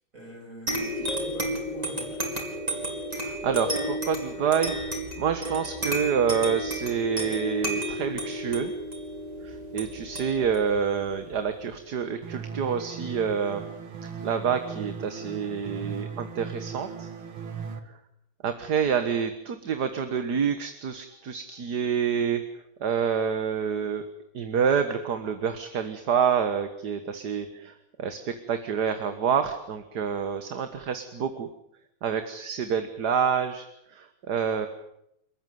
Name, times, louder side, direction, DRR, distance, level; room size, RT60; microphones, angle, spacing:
voice 1, 0.1-2.4, equal, 35° right, 1 dB, 7.4 m, -45 dB
sound 1, 0.7-11.7, equal, 15° right, 5.3 m, -32 dB
voice 2, 3.1-8.7 9.4-13.6 14.2-17.1 18.4-22.4 22.8-24.0 24.3-27.7 28.0-31.5 32.0-33.7 33.9-34.7, right 7 dB, 50° right, 9 dB, 1.8 m, -27 dB
sound 2, 12.2-17.8, right 6 dB, 75° right, 2.6 m, -38 dB
29.5 x 14.0 x 9.4 m, 0.79 s
omnidirectional pair, 2.3 m